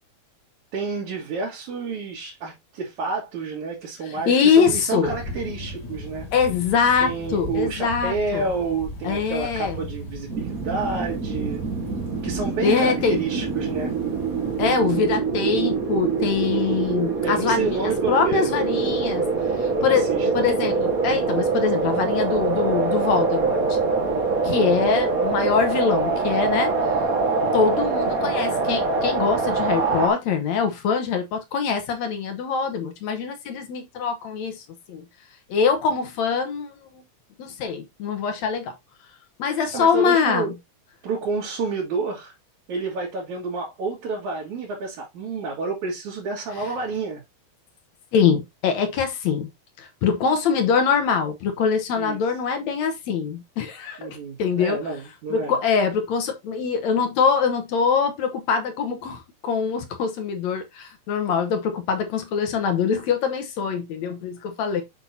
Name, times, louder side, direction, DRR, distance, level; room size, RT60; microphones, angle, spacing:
voice 1, 0.7-6.3 7.0-11.6 12.2-13.9 17.2-18.7 19.1-19.2 19.6-20.3 24.6-24.8 39.7-40.5 41.0-42.3 42.7-47.2 52.0-52.2 54.0-55.6, right 4 dB, 70° right, 3.7 m, -29 dB
voice 2, 4.3-5.1 6.3-8.4 9.0-9.8 12.6-13.2 14.6-17.8 18.1-19.2 19.6-23.8 24.4-26.7 27.5-34.6 34.9-35.0 35.5-37.0 37.4-38.7 39.4-40.5 48.1-49.5 49.8-54.8 55.3-64.8, left 6 dB, 65° left, 2.3 m, -23 dB
sound 1, 5.0-14.7, equal, 35° left, 2.3 m, -37 dB
sound 2, 10.3-30.1, right 4 dB, 40° right, 1.5 m, -24 dB
7.7 x 6.1 x 2.8 m
omnidirectional pair, 3.6 m